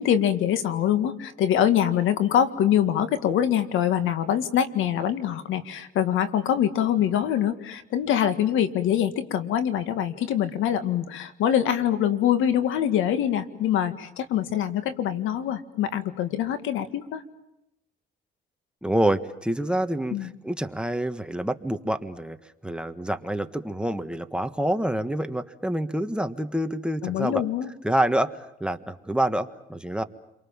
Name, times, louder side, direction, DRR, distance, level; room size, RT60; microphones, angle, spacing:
voice 1, 0.0-17.2 20.1-20.3 27.0-27.7, left 10 dB, 90° left, 10 dB, 2.0 m, -24 dB
voice 2, 18.8-27.4 27.8-30.0, right 1 dB, 5° right, 8 dB, 1.5 m, -27 dB
30.0 x 23.5 x 7.3 m, 0.86 s
cardioid pair, 90°, 20 cm